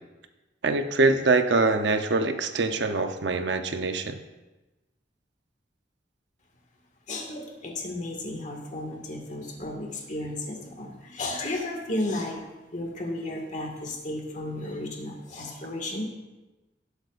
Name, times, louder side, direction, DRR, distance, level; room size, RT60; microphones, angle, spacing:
voice 1, 0.6-4.2, right 3 dB, 70° right, 8 dB, 0.7 m, -24 dB
voice 2, 7.1-12.4 12.7-16.0, left 1 dB, 45° left, 1 dB, 1.8 m, -33 dB
18.0 x 8.0 x 2.5 m, 1.1 s
head